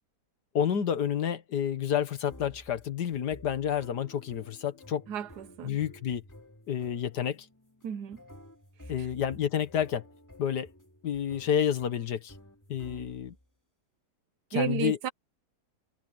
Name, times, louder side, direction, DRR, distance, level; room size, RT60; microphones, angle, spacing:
voice 1, 0.6-5.0 5.6-6.2 6.7-7.4 8.9-10.0 10.4-10.7 11.0-12.3 12.7-13.3 14.5-15.0, left 9 dB, 75° left, 1.8 m, -29 dB
sound 1, 2.3-13.5, left 1 dB, 10° left, 2.7 m, -52 dB
voice 2, 5.1-5.8 7.8-8.2 14.5-15.1, right 9 dB, 75° right, 1.4 m, -32 dB
omnidirectional pair, 1.8 m